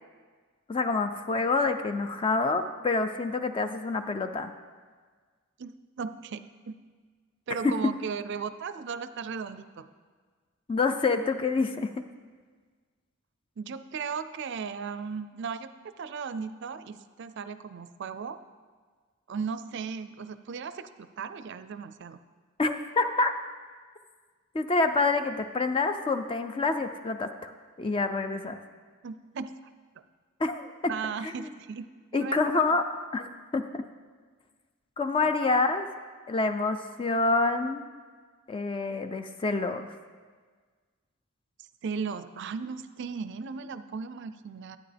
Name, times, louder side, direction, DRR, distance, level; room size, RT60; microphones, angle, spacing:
voice 1, 0.7-4.5 7.6-7.7 10.7-11.9 22.6-23.3 24.5-27.5 27.8-28.6 30.4-30.9 31.2-31.5 32.1-32.9 33.1-33.3 33.5-33.8 35.0-35.9 36.3-37.8 38.5-39.9, left 3 dB, 25° left, 8 dB, 0.4 m, -27 dB
voice 2, 5.6-6.7 7.5-9.9 13.6-18.4 19.3-22.2 29.0-29.5 30.9-32.8 35.2-35.3 41.8-44.8, right 5 dB, 55° right, 12 dB, 0.4 m, -36 dB
12.5 x 9.0 x 3.4 m, 1.5 s
head